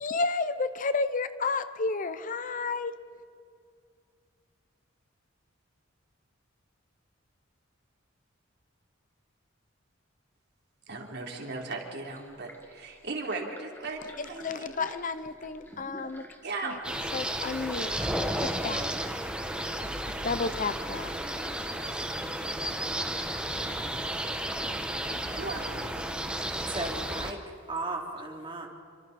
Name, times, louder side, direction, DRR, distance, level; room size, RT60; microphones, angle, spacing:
voice 1, 0.0-2.9 14.2-16.2 16.6-16.8 17.1-17.9 18.4-18.8 20.2-21.1, left 4 dB, 40° left, 12 dB, 0.7 m, -31 dB
voice 2, 10.9-14.9 16.0-16.1 16.4-16.8 18.0-18.1 25.1-25.9, right 3 dB, 55° right, 1 dB, 3.5 m, -37 dB
sound 1, 12.0-25.7, left 1 dB, 10° left, 1.8 m, -51 dB
sound 2, 16.8-27.3, right 1 dB, 5° right, 1.4 m, -33 dB
voice 3, 26.5-28.7, right 2 dB, 25° right, 0 dB, 3.0 m, -36 dB
28.5 x 25.5 x 4.3 m, 2.4 s
head